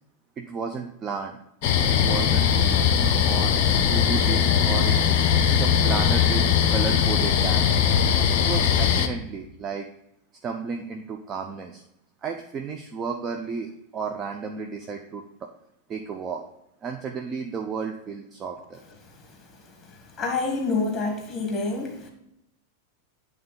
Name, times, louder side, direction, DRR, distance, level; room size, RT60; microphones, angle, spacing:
voice 1, 0.4-1.4 1.9-2.5 3.2-5.1 5.5-6.4 6.7-7.8 8.4-9.9 10.4-11.8 12.2-15.2 15.9-16.4 16.8-18.8, right 5 dB, 25° right, 4 dB, 0.5 m, -33 dB
sound 1, 1.6-9.1, left 8 dB, 45° left, 0.6 m, -20 dB
voice 2, 20.2-22.1, left 3 dB, 15° left, 2 dB, 1.5 m, -27 dB
8.7 x 3.4 x 5.3 m, 0.80 s
figure-of-eight pair, 90°, 0 cm